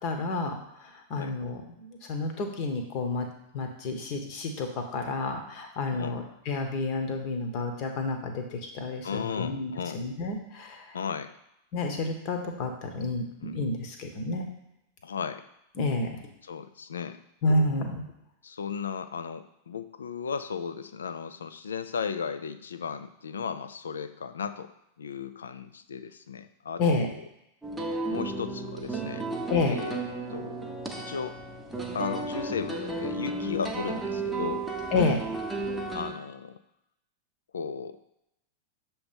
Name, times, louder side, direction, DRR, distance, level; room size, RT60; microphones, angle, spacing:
voice 1, 0.0-3.3 3.5-10.9 11.7-14.5 15.8-16.2 17.4-18.0 26.8-27.1 29.5-29.8 34.9-35.2, left 2 dB, 45° left, 4 dB, 1.0 m, -30 dB
voice 2, 9.0-10.0 10.9-11.3 13.4-13.6 15.0-15.4 16.4-17.2 18.4-24.7 25.0-27.1 28.1-29.3 29.7-30.0 30.3-31.4 31.9-34.7 35.9-36.6 37.5-38.0, left 6 dB, 70° left, 11 dB, 0.4 m, -35 dB
sound 1, 27.6-36.1, right 3 dB, 5° right, 0.9 m, -33 dB
6.9 x 3.1 x 5.1 m, 0.84 s
figure-of-eight pair, 90°, 0 cm